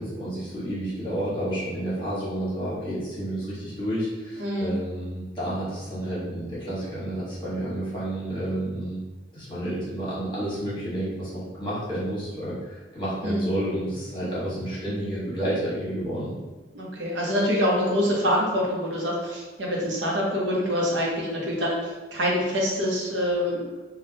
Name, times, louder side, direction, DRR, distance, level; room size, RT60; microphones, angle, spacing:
voice 1, 0.0-9.0 9.3-16.3, right 1 dB, 25° left, -9 dB, 1.3 m, -30 dB
voice 2, 4.4-4.8 13.2-13.5 16.7-23.8, equal, 80° right, -3 dB, 0.8 m, -25 dB
3.5 x 2.3 x 2.7 m, 1.2 s
head